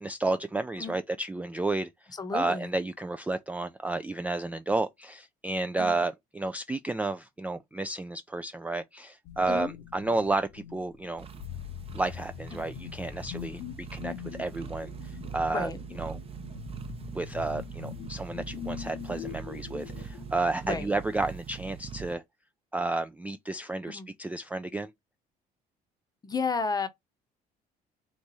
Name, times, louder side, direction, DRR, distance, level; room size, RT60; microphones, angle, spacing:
voice 1, 0.0-11.3 11.9-15.7 16.0-16.2 17.1-22.2 22.7-24.9, right 2 dB, 10° right, 0.3 m, -32 dB
voice 2, 2.2-2.7 5.8-6.0 9.5-9.7 12.5-12.7 15.5-15.8 20.6-20.9 23.9-24.1 26.2-26.9, left 4 dB, 25° left, 0.8 m, -32 dB
sound 1, 9.2-20.3, left 10 dB, 80° left, 0.9 m, -43 dB
sound 2, 11.2-22.1, right 7 dB, 35° right, 0.7 m, -42 dB
3.5 x 3.1 x 4.1 m
cardioid pair, 110°, 17 cm